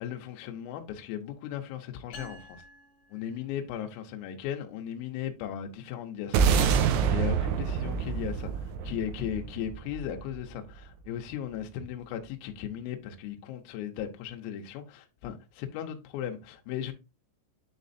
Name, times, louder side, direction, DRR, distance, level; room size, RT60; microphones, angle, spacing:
voice 1, 0.0-2.6 3.1-8.5 8.8-16.9, left 10 dB, 85° left, 3.5 m, -37 dB
sound 1, 2.1-3.9, left 1 dB, 40° left, 3.3 m, -50 dB
sound 2, 6.3-10.8, right 7 dB, 80° right, 3.0 m, -27 dB
10.0 x 4.1 x 2.6 m
omnidirectional pair, 6.0 m